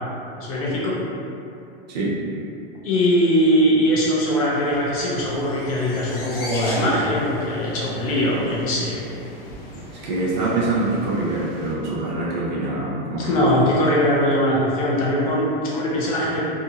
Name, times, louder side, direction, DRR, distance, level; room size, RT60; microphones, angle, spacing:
voice 1, 0.4-1.0 2.8-9.1 13.2-16.4, equal, 35° left, -6 dB, 0.4 m, -21 dB
voice 2, 1.9-2.2 9.7-13.6, right 2 dB, 45° right, -4 dB, 0.5 m, -25 dB
sound 1, 4.6-11.7, equal, 60° left, 1.0 m, -36 dB
2.7 x 2.3 x 2.7 m, 2.7 s
supercardioid pair, 175°, 30 cm